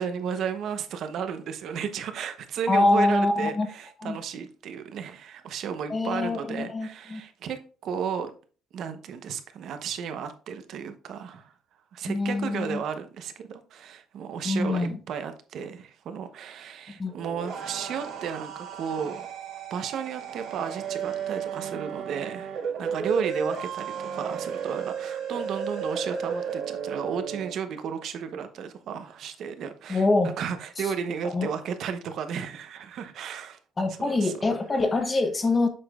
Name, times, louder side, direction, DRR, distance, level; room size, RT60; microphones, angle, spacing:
voice 1, 0.0-8.3 8.7-11.5 11.9-33.6 34.0-34.3, right 7 dB, 65° right, 0.9 m, -34 dB
voice 2, 2.7-3.7 4.0-4.2 5.9-7.2 12.1-12.8 14.4-15.0 17.0-17.1 29.9-30.3 31.2-31.5 33.8-35.7, left 2 dB, 25° left, 0.9 m, -24 dB
sound 1, 17.1-27.5, right 7 dB, 80° right, 1.9 m, -33 dB
7.6 x 5.9 x 2.4 m
cardioid pair, 120°, 0 cm